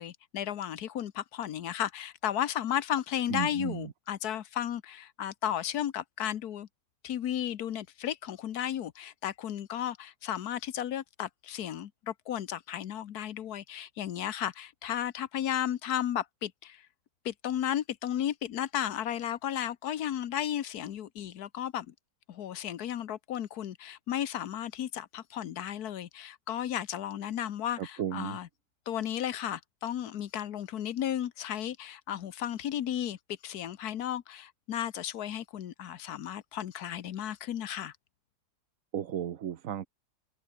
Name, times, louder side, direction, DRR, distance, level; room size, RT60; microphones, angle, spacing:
voice 1, 0.0-6.7 7.0-16.9 17.2-21.9 22.3-28.5 28.9-33.2 33.4-37.9, left 10 dB, 75° left, 1.5 m, -34 dB
voice 2, 3.3-3.9 27.8-28.4 38.9-39.9, right 9 dB, 60° right, 1.3 m, -34 dB
omnidirectional pair, 1.7 m